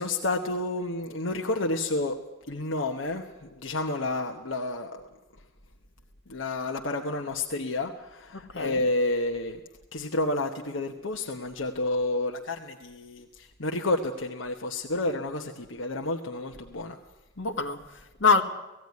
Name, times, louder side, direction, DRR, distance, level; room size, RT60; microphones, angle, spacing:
voice 1, 0.0-2.2 2.5-5.0 6.3-9.6 9.9-17.0, left 2 dB, 90° left, 1.2 m, -30 dB
voice 2, 8.3-8.8 17.4-18.4, left 4 dB, 75° left, 1.7 m, -25 dB
17.5 x 15.5 x 9.6 m
head